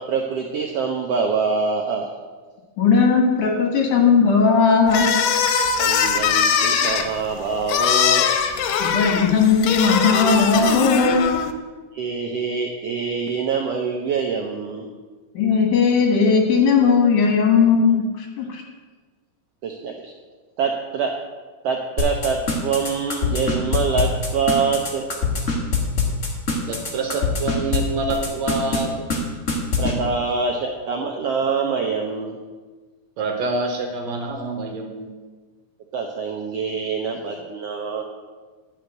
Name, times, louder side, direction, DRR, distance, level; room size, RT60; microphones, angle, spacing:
voice 1, 0.0-2.1 5.8-8.3 11.9-14.9 19.6-20.1 20.6-21.1 21.6-25.1 29.8-32.4 35.9-38.0, right 5 dB, 90° right, 2 dB, 1.3 m, -25 dB
voice 2, 2.8-5.1 8.8-11.2 15.3-18.6, left 5 dB, 70° left, 2 dB, 2.8 m, -17 dB
sound 1, 4.9-11.5, left 7 dB, 90° left, 2.2 m, -21 dB
sound 2, 22.0-27.8 28.1-28.8 29.1-29.2 29.5-29.9, left 5 dB, 45° left, 0.9 m, -22 dB
voice 3, 26.7-28.9 33.2-35.1, right 3 dB, 70° right, 3 dB, 1.9 m, -26 dB
10.5 x 4.3 x 7.7 m, 1.4 s
omnidirectional pair, 3.7 m